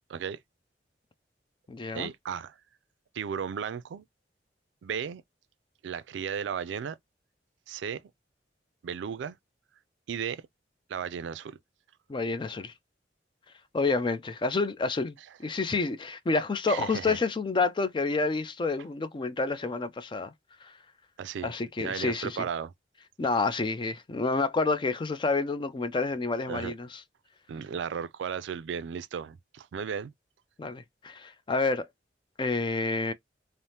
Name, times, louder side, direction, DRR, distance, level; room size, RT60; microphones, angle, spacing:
voice 1, 0.1-0.4 1.9-2.6 3.1-4.0 4.8-5.2 5.8-7.0 7.7-8.1 8.8-9.4 10.1-10.4 10.9-11.6 16.7-17.2 21.2-21.5 21.8-22.7 26.5-26.7 27.5-30.1, right 7 dB, 90° right, 0.3 m, -35 dB
voice 2, 1.7-2.1 12.1-12.7 13.7-20.3 20.6-20.7 21.4-22.4 23.2-27.0 30.6-31.8 32.4-33.1, left 3 dB, 25° left, 0.4 m, -29 dB
3.3 x 2.0 x 2.7 m
head